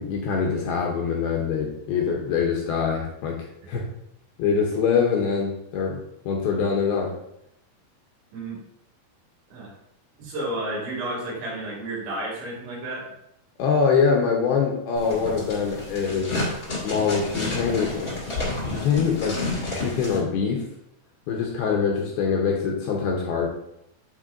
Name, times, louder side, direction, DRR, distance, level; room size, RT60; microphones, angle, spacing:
voice 1, 0.0-3.4 3.7-3.9 4.4-7.1 13.6-16.4 16.8-18.1 18.6-20.7 21.3-23.5, left 6 dB, 75° left, 0 dB, 2.4 m, -24 dB
voice 2, 10.2-13.1, right 1 dB, 80° right, -5 dB, 4.7 m, -31 dB
sound 1, 14.9-20.2, left 2 dB, 50° left, 1.0 m, -30 dB
10.5 x 4.4 x 2.6 m, 0.79 s
omnidirectional pair, 5.1 m